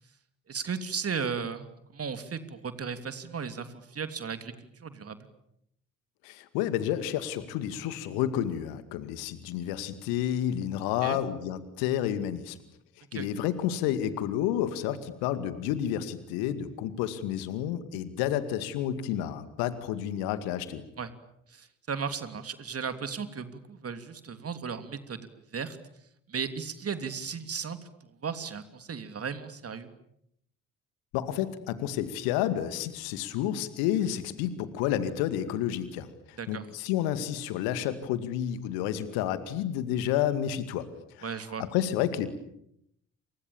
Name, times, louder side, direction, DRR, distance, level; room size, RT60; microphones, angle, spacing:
voice 1, 0.5-4.5 4.8-5.3 11.0-11.2 13.1-13.3 21.0-21.1 21.5-25.8 26.3-27.8 28.2-29.9 36.4-36.6 41.2-41.6, right 6 dB, 35° right, 10 dB, 3.1 m, -35 dB
voice 2, 6.2-12.6 13.1-20.8 31.1-40.9 41.2-42.3, left 11 dB, 65° left, 12 dB, 2.3 m, -30 dB
29.0 x 28.5 x 7.2 m, 0.76 s
figure-of-eight pair, 45°, 39 cm